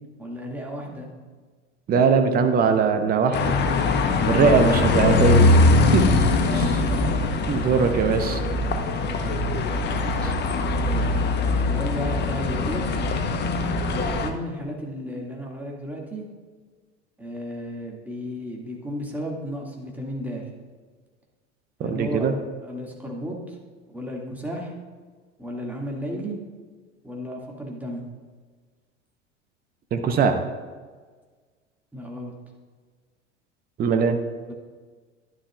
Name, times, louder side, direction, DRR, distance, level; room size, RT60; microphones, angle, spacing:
voice 1, 0.2-1.1 4.1-4.3 6.6-7.1 10.8-11.1 11.6-12.8 13.9-16.2 17.2-20.5 21.8-22.3 22.6-23.6 23.9-24.7 25.4-26.4 27.0-28.0 31.9-32.3 34.5-34.6, equal, 5° right, -2 dB, 2.0 m, -33 dB
voice 2, 1.9-3.4 4.3-5.6 5.9-6.0 6.5-6.8 7.5-8.4 10.2-10.3 21.9-22.3 29.9-30.4 33.8-34.2, right 6 dB, 25° right, 7 dB, 0.8 m, -20 dB
sound 1, 3.3-14.3, left 3 dB, 30° left, 0.9 m, -22 dB
11.0 x 10.5 x 2.3 m, 1.5 s
figure-of-eight pair, 80°, 36 cm